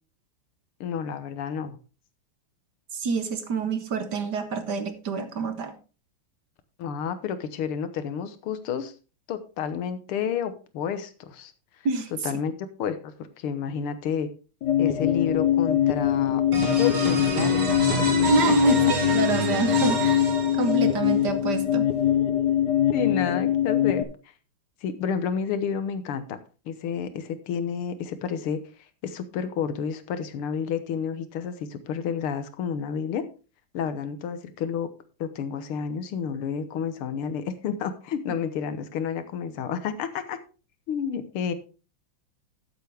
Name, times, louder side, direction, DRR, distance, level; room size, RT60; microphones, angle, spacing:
voice 1, 0.8-1.8 6.8-8.9 9.3-11.5 12.2-14.3 14.8-18.1 22.9-24.0 24.8-26.4 26.7-28.6 29.0-33.2 33.7-34.9 35.2-40.4 40.9-41.5, left 7 dB, 80° left, 11 dB, 2.0 m, -30 dB
voice 2, 2.9-5.7 11.8-12.1 18.3-20.3 20.6-21.9, right 4 dB, 55° right, 9 dB, 1.5 m, -26 dB
sound 1, 14.6-24.0, left 11 dB, 60° left, 1.4 m, -23 dB
sound 2, 16.5-21.1, right 4 dB, 70° right, 3.0 m, -29 dB
12.5 x 8.2 x 3.5 m, 0.34 s
omnidirectional pair, 2.4 m